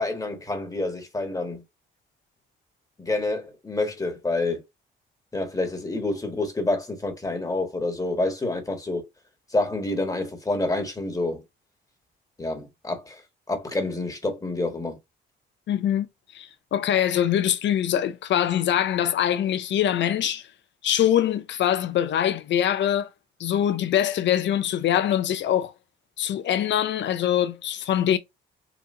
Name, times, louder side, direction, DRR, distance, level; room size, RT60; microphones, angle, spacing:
voice 1, 0.0-1.6 3.0-4.6 5.3-9.0 9.5-11.4 12.4-13.2 13.5-15.0, left 2 dB, 15° left, 1.6 m, -28 dB
voice 2, 15.7-16.1 16.3-20.4 20.8-23.1 23.4-25.7 26.2-28.2, left 10 dB, 65° left, 0.6 m, -23 dB
4.1 x 2.7 x 4.3 m
cardioid pair, 90°, 20 cm